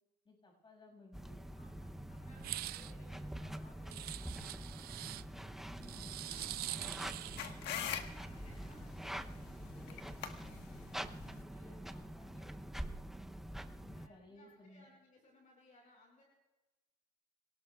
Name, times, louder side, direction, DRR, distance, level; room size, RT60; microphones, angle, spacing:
voice 1, 0.2-1.4 5.7-6.1 6.4-7.0 11.6-12.3 13.8-14.9, left 1 dB, 30° left, 1 dB, 6.4 m, -58 dB
sound 1, 1.1-14.1, right 1 dB, ahead, 0.7 m, -46 dB
voice 2, 1.6-5.7 6.3-7.1 7.5-11.9 12.3-12.8 13.9-16.2, left 2 dB, 45° left, 0 dB, 5.2 m, -65 dB
sound 2, 2.4-2.9 3.9-5.2 5.8-7.6, right 16 dB, 65° right, 0.4 m, -44 dB
sound 3, 6.3-11.4, left 9 dB, 85° left, 1.4 m, -45 dB
27.0 x 18.5 x 2.4 m, 1.1 s
cardioid pair, 110°, 17 cm